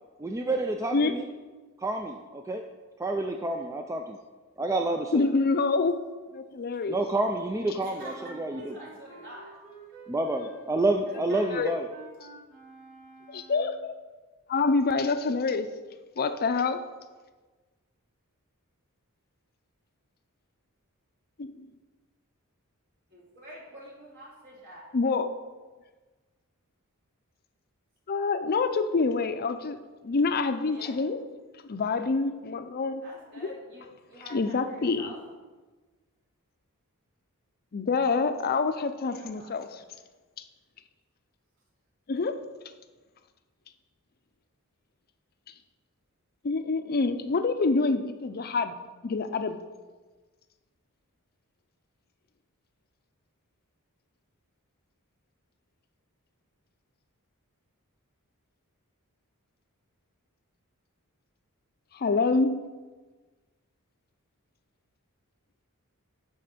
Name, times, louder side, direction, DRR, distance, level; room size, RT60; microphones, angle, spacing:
voice 1, 0.2-1.3 1.8-2.6 3.0-4.2 4.6-5.3 6.9-8.6 10.1-11.9, right 2 dB, 15° right, 4 dB, 0.4 m, -29 dB
voice 2, 5.1-6.0 6.3-7.0 10.4-10.5 11.5-11.8 13.3-13.9 14.5-15.7 16.2-16.8 21.4-21.5 24.9-25.3 28.1-29.8 30.0-31.2 31.7-33.0 33.3-33.5 34.3-35.1 37.7-39.8 42.1-42.4 46.4-48.7 49.0-49.6 61.9-62.6, left 4 dB, 45° left, 9 dB, 0.5 m, -26 dB
voice 3, 7.8-9.5 11.1-11.4 23.1-24.9 30.7-30.9 33.0-35.2 39.1-39.8, equal, 55° right, -5 dB, 3.0 m, -46 dB
Wind instrument woodwind instrument, 7.9-13.9, right 3 dB, 85° right, 2.7 m, -50 dB
11.5 x 4.2 x 5.1 m, 1.3 s
head